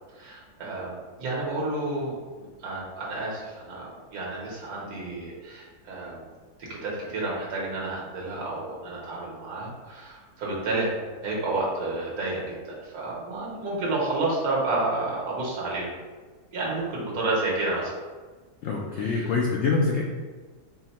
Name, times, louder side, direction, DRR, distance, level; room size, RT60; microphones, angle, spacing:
voice 1, 0.1-6.2 6.6-10.9 11.2-15.9 16.5-18.0 19.1-19.3, right 2 dB, 70° right, -4 dB, 1.5 m, -30 dB
voice 2, 18.6-20.0, left 4 dB, 75° left, -2 dB, 0.6 m, -25 dB
4.5 x 2.1 x 4.1 m, 1.4 s
omnidirectional pair, 1.7 m